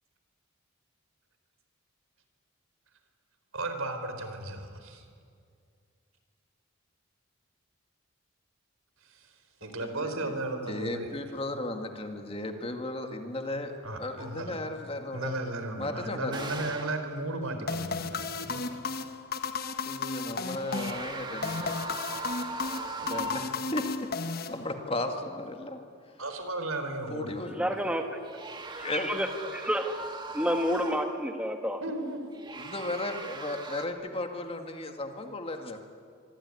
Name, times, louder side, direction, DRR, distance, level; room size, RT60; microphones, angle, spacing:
voice 1, 3.5-5.1 9.0-9.3 9.6-11.1 13.8-14.6 15.1-18.8 26.2-27.4 31.8-32.2, right 2 dB, 85° right, 7 dB, 4.0 m, -35 dB
voice 2, 9.6-10.3 10.7-13.7 14.0-15.3 15.8-16.5 19.8-22.0 23.0-24.1 24.5-25.8 27.1-27.7 28.8-29.1 32.6-35.8, left 2 dB, 25° left, 5 dB, 2.0 m, -35 dB
sound 1, 14.2-14.4 16.3-17.1 20.4-23.8 28.1-31.2 32.3-33.8, right 2 dB, 20° right, 1.8 m, -39 dB
sound 2, 17.7-25.1, left 4 dB, 45° left, 1.2 m, -34 dB
voice 3, 27.5-28.0 28.8-29.3 29.5-30.0 30.3-31.8, equal, 5° right, 5 dB, 1.5 m, -29 dB
25.5 x 24.0 x 9.8 m, 2.3 s
head